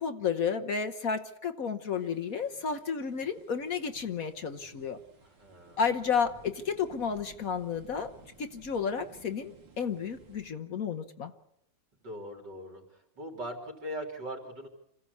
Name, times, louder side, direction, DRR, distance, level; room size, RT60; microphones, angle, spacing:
voice 1, 0.0-5.0 5.8-8.1 8.4-11.3, left 6 dB, 55° left, 7 dB, 1.3 m, -32 dB
sound 1, 1.8-10.5, right 3 dB, 90° right, 3.5 m, -57 dB
voice 2, 5.2-5.8 12.0-12.8 13.2-14.7, equal, 70° right, 1 dB, 4.2 m, -40 dB
27.0 x 15.5 x 8.4 m, 0.82 s
omnidirectional pair, 2.0 m